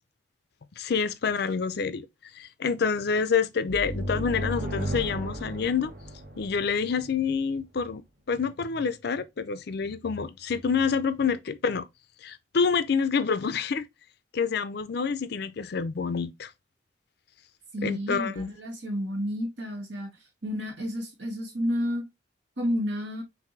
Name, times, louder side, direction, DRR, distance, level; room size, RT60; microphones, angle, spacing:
voice 1, 0.8-2.1 2.4-5.9 6.4-8.0 8.3-11.8 12.2-13.9 14.3-16.5 17.8-18.5, left 5 dB, 60° left, 0.5 m, -27 dB
sound 1, 3.7-7.3, right 1 dB, 55° right, 1.1 m, -34 dB
voice 2, 17.7-20.1 20.4-22.0 22.6-23.2, equal, 80° right, 1.9 m, -30 dB
5.8 x 2.7 x 3.1 m
head